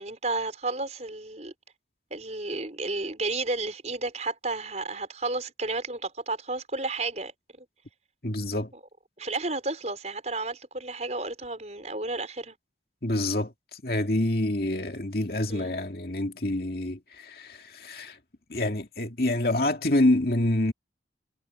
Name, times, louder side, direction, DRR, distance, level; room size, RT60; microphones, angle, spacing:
voice 1, 0.0-1.5 2.1-7.3 7.6-7.7 9.2-12.6 15.5-15.8, right 3 dB, 40° right, 5.3 m, -32 dB
voice 2, 8.2-8.7 13.0-18.2 18.5-20.7, left 1 dB, 55° left, 2.4 m, -27 dB
head